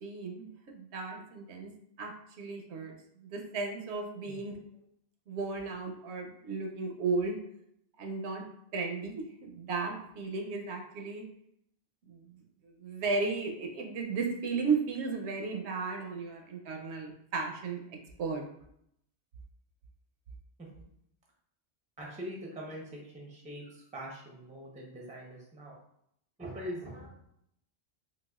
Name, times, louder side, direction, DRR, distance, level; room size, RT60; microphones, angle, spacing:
voice 1, 0.0-1.7 2.0-4.6 5.3-7.4 8.0-8.4 8.7-11.3 12.1-17.8 18.2-18.4, right 4 dB, 75° right, 2 dB, 0.8 m, -35 dB
voice 2, 22.0-25.8 26.4-27.1, equal, 10° right, -1 dB, 0.4 m, -43 dB
4.0 x 2.3 x 2.3 m, 0.74 s
omnidirectional pair, 1.2 m